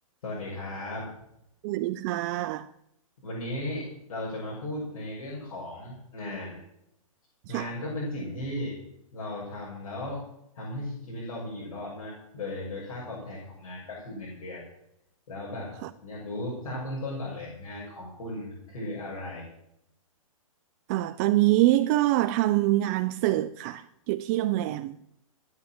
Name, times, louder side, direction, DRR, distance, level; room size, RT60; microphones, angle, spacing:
voice 1, 0.2-1.1 3.2-6.6 7.5-8.8 9.1-10.2 10.5-14.6 15.3-15.7 16.0-19.5, left 1 dB, 75° left, 6.8 m, -36 dB
voice 2, 1.6-2.7 7.5-7.7 15.8-15.9 20.9-25.0, right 16 dB, 30° right, 0.4 m, -25 dB
14.0 x 9.6 x 7.7 m
hypercardioid pair, 150°, 18 cm